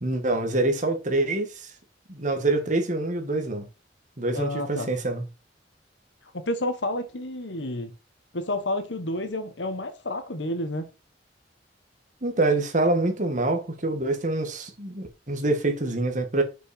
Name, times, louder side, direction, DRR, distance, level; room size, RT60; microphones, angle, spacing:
voice 1, 0.0-1.7 2.1-3.7 4.2-5.2 12.2-16.4, right 2 dB, 45° right, 1.8 m, -25 dB
voice 2, 4.3-4.9 6.4-7.9 8.3-10.9, left 1 dB, 85° left, 1.5 m, -30 dB
6.2 x 5.6 x 5.0 m
head